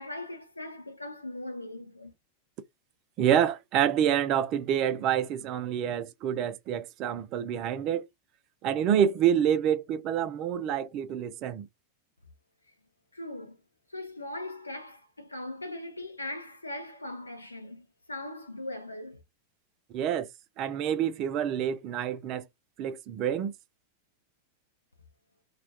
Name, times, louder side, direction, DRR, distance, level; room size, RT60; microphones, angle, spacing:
voice 1, 0.0-2.1 13.1-13.6 13.9-19.2, left 1 dB, 85° left, 0.6 m, -40 dB
voice 2, 3.2-8.1 8.6-11.7 19.9-20.3 20.6-22.5 22.8-23.5, right 9 dB, 40° right, 0.4 m, -27 dB
2.3 x 2.2 x 2.7 m
figure-of-eight pair, 90°, 0 cm